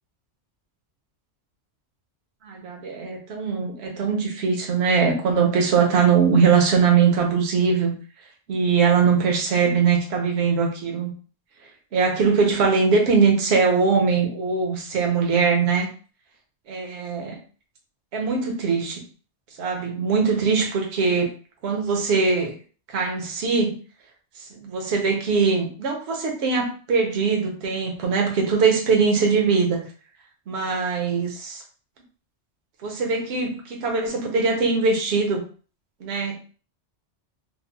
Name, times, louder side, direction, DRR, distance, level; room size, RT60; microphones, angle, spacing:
voice 1, 2.4-7.9 8.5-11.1 11.9-15.9 16.7-17.4 18.1-19.0 19.6-21.3 21.6-22.5 22.9-23.8 24.4-29.8 30.5-31.6 32.8-35.4 36.0-36.4, right 5 dB, 65° right, 1 dB, 1.0 m, -21 dB
3.7 x 2.1 x 2.2 m, 0.39 s
omnidirectional pair, 1.2 m